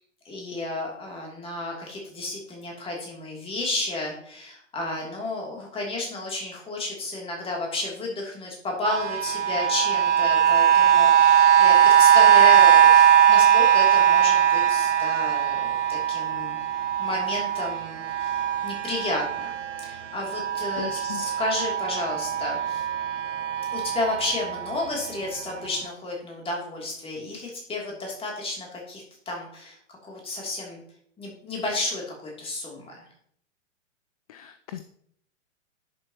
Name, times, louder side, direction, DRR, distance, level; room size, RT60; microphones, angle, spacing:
voice 1, 0.2-16.6 17.0-19.5 19.8-22.9 23.7-30.8 31.2-33.1, left 2 dB, 15° left, -1 dB, 2.9 m, -32 dB
sound 1, 8.8-19.9 20.2-24.8 25.5-25.6, right 10 dB, 70° right, 0.7 m, -20 dB
voice 2, 20.8-21.2 34.3-34.8, left 11 dB, 30° left, 10 dB, 0.4 m, -37 dB
11.0 x 7.0 x 3.0 m, 0.67 s
figure-of-eight pair, 110°, 37 cm